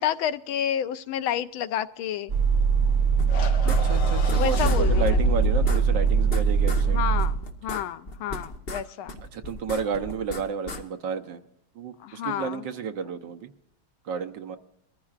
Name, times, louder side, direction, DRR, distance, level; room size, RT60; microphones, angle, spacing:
voice 1, 0.0-2.3 3.2-3.3 4.3-5.2 6.8-9.2 12.0-12.6, left 10 dB, 80° left, 13 dB, 1.5 m, -30 dB
sound 1, 2.3-7.3, right 6 dB, 30° right, 6.1 m, -22 dB
sound 2, 3.2-4.4 4.6-4.8 5.1-5.2 5.4-6.8 7.2-8.8 9.1-10.8, left 2 dB, 35° left, 1.1 m, -35 dB
sound 3, 3.3-7.7, left 3 dB, 65° left, 1.9 m, -30 dB
voice 2, 3.7-7.0 9.3-11.4 11.7-13.5 14.0-14.6, right 6 dB, 65° right, 6 dB, 1.4 m, -31 dB
23.5 x 14.5 x 2.4 m, 0.80 s
omnidirectional pair, 2.3 m